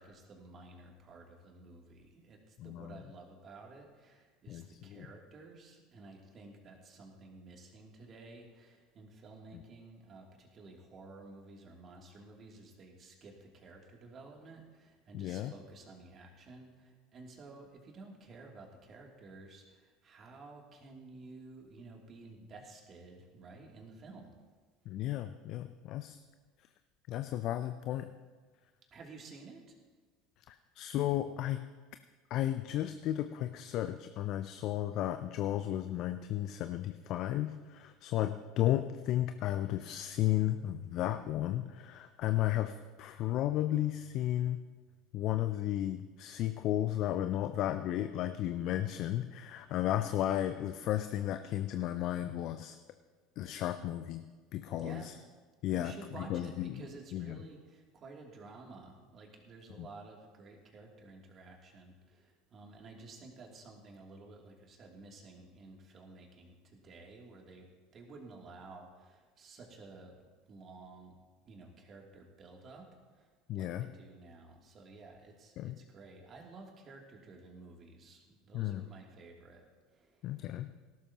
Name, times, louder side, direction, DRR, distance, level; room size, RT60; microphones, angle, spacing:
voice 1, 0.0-24.3 28.9-29.7 54.8-55.1 55.7-67.6 67.9-71.1 71.5-79.6 79.9-80.4, right 3 dB, 40° right, 0 dB, 2.9 m, -53 dB
voice 2, 2.6-3.0 4.5-5.1 9.5-9.6 15.1-15.5 24.9-26.2 27.1-28.1 30.5-31.6 32.3-42.7 43.0-44.6 45.1-52.8 53.4-54.2 54.5-55.1 55.6-56.8 57.1-57.4 59.8-59.9 73.5-73.9 75.6-75.8 78.5-78.9 80.2-80.7, left 13 dB, 55° left, 10 dB, 0.5 m, -34 dB
18.0 x 12.5 x 3.0 m, 1.4 s
hypercardioid pair, 75°, 0 cm